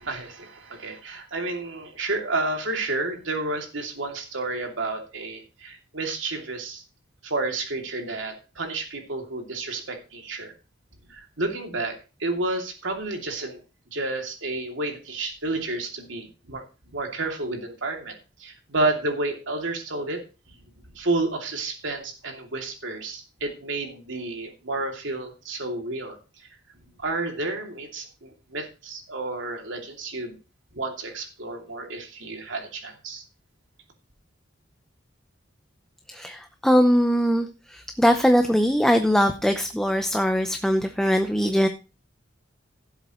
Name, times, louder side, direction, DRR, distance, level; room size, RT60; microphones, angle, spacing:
voice 1, 0.0-6.8 7.2-10.5 11.1-13.6 13.9-16.6 16.9-20.2 20.5-20.6 20.9-26.5 27.0-30.4 30.7-33.2, right 2 dB, 80° right, 3 dB, 2.8 m, -31 dB
voice 2, 36.1-41.7, equal, 5° left, 6 dB, 0.7 m, -21 dB
16.0 x 7.9 x 3.1 m, 0.31 s
head